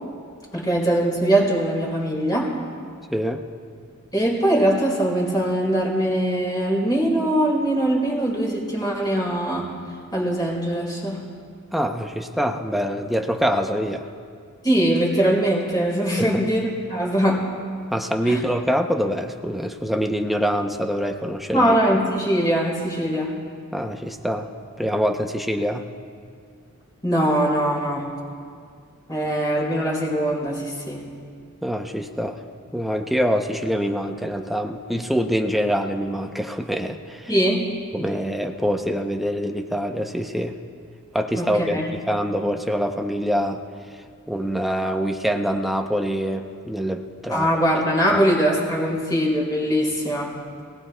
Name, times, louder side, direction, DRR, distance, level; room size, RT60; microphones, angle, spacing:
voice 1, 0.5-2.6 4.1-9.7 10.1-11.2 14.6-17.5 18.3-18.4 21.5-23.4 27.0-28.1 29.1-31.1 37.3-37.7 41.4-41.8 47.3-50.3, right 1 dB, 20° left, -5 dB, 3.9 m, -22 dB
voice 2, 3.1-3.4 11.7-14.0 16.2-16.4 17.9-21.8 23.7-24.5 24.8-25.9 31.6-32.4 32.7-37.3 37.9-40.6 41.1-43.6 44.3-47.5 48.1-48.2, equal, ahead, 3 dB, 0.6 m, -25 dB
26.0 x 18.0 x 2.2 m, 2.2 s
head